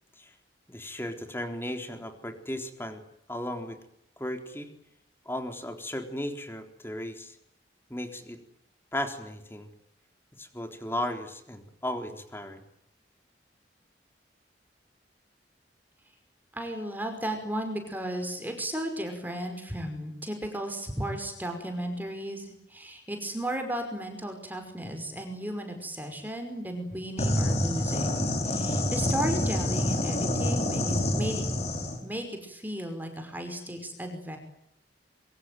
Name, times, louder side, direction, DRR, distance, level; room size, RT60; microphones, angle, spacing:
voice 1, 0.7-3.0 3.3-3.8 4.2-4.7 5.3-7.4 7.9-8.4 8.9-9.7 10.4-12.6, left 1 dB, 15° left, 6 dB, 3.9 m, -35 dB
voice 2, 16.5-31.4 32.0-34.4, right 1 dB, 10° right, 5 dB, 5.4 m, -35 dB
sound 1, 27.2-32.0, left 1 dB, 35° left, 4.9 m, -27 dB
26.5 x 24.5 x 9.4 m, 0.74 s
head